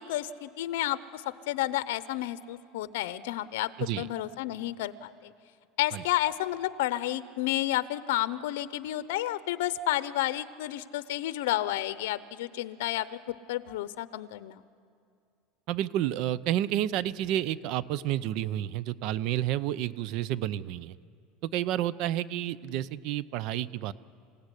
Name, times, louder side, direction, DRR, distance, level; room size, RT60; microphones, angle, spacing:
voice 1, 0.0-3.7 4.0-5.3 5.8-14.6, left 14 dB, 85° left, 14 dB, 0.8 m, -31 dB
voice 2, 15.7-21.0 21.4-23.9, right 12 dB, 55° right, 18 dB, 0.7 m, -30 dB
27.5 x 16.5 x 10.0 m, 2.3 s
supercardioid pair, 145°, 0 cm